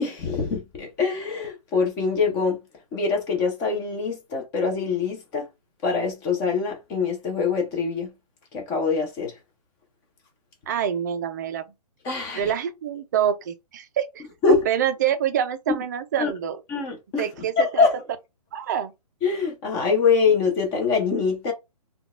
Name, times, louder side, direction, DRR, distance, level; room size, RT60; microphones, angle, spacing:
voice 1, 0.0-2.6 2.9-5.4 5.8-8.1 8.5-9.3 12.0-12.5 14.4-14.6 16.2-16.3 16.7-17.3 17.6-17.9 19.2-21.5, left 5 dB, 15° left, 0.6 m, -24 dB
voice 2, 10.7-11.6 12.3-16.6 17.2-17.9 18.5-18.9, right 9 dB, 30° right, 0.4 m, -26 dB
3.7 x 2.3 x 2.4 m
hypercardioid pair, 155°, 20 cm